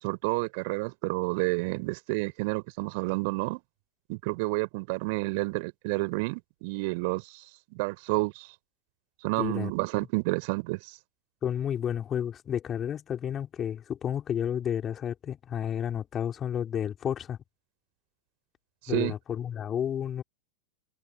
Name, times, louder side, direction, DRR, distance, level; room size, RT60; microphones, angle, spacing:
voice 1, 0.0-3.6 4.1-7.4 7.7-8.5 9.2-10.8 18.8-19.1, right 28 dB, 45° right, 4.0 m, -30 dB
voice 2, 9.4-9.7 11.4-17.4 18.9-20.2, left 9 dB, 25° left, 4.2 m, -31 dB
figure-of-eight pair, 90°, 0 cm